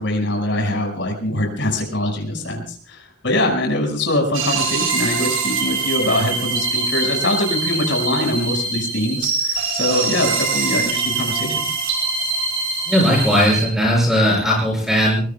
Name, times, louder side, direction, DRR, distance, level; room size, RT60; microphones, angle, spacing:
voice 1, 0.0-11.7, left 1 dB, 65° left, 2 dB, 5.8 m, -23 dB
sound 1, 4.3-13.6, right 4 dB, 85° right, 4.8 m, -23 dB
voice 2, 12.9-15.3, equal, ahead, -1 dB, 6.3 m, -17 dB
23.0 x 22.5 x 2.3 m, 0.42 s
head